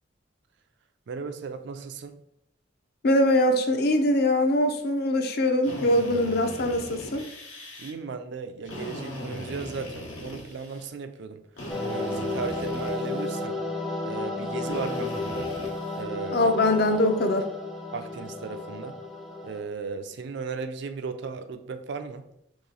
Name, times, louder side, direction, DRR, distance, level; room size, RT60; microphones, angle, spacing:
voice 1, 1.1-2.2 7.8-11.4 11.9-13.6 14.0-15.5 15.9-16.5 17.9-19.0 19.4-22.3, right 5 dB, 60° right, 8 dB, 0.4 m, -36 dB
voice 2, 3.0-7.3 16.3-17.5, left 1 dB, 55° left, 6 dB, 0.5 m, -22 dB
Drill, 5.6-7.9 8.6-10.9 11.6-13.5 14.7-16.0, left 1 dB, 85° left, 1.0 m, -39 dB
sound 1, 11.7-19.6, left 2 dB, ahead, 0.4 m, -33 dB
3.1 x 2.9 x 3.8 m, 0.77 s
head